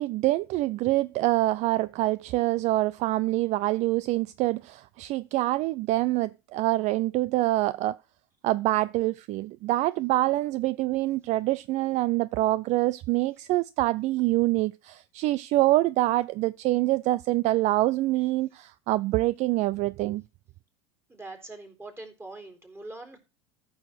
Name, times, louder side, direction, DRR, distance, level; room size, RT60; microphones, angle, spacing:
voice 1, 0.0-8.0 8.4-20.2, right 17 dB, 50° right, 0.4 m, -25 dB
voice 2, 21.1-23.2, right 2 dB, 15° right, 3.9 m, -43 dB
14.0 x 6.3 x 4.3 m
hypercardioid pair, 85°, 15 cm